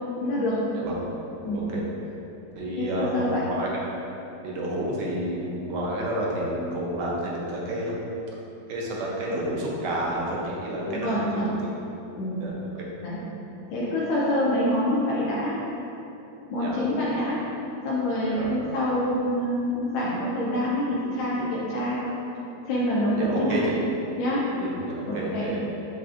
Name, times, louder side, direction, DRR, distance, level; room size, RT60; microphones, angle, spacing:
voice 1, 0.2-0.6 1.4-1.6 2.8-3.4 10.9-11.5 12.2-12.4 13.0-13.2 13.7-15.6 16.5-17.4 17.8-22.1 22.6-23.7 24.2-24.5 25.1-25.5, left 1 dB, 85° left, -7 dB, 1.4 m, -26 dB
voice 2, 2.6-3.7 4.4-8.0 8.7-11.1 11.3-11.6 12.4-12.9 16.6-16.8 18.3-18.5 23.2-23.8 24.6-25.6, right 1 dB, 70° right, -4 dB, 1.1 m, -30 dB
6.1 x 2.4 x 2.4 m, 3.0 s
omnidirectional pair, 2.1 m